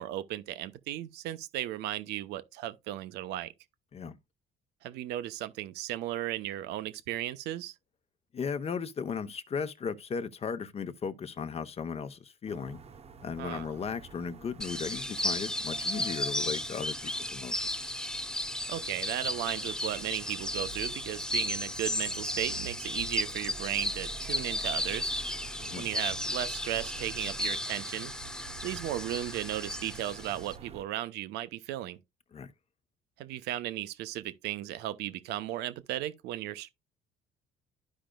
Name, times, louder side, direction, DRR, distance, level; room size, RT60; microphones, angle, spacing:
voice 1, 0.0-3.5 4.8-7.7 13.4-13.7 18.7-25.1 25.8-28.1 28.6-32.0 33.2-36.7, right 13 dB, 90° right, 0.8 m, -35 dB
voice 2, 8.3-12.8 13.2-17.9 25.6-25.9 32.3-32.5, left 6 dB, 35° left, 0.8 m, -36 dB
sound 1, 12.5-30.8, right 5 dB, 35° right, 0.8 m, -48 dB
sound 2, 14.6-30.6, left 1 dB, 5° left, 0.4 m, -34 dB
12.5 x 5.1 x 2.3 m
cardioid pair, 110°, 17 cm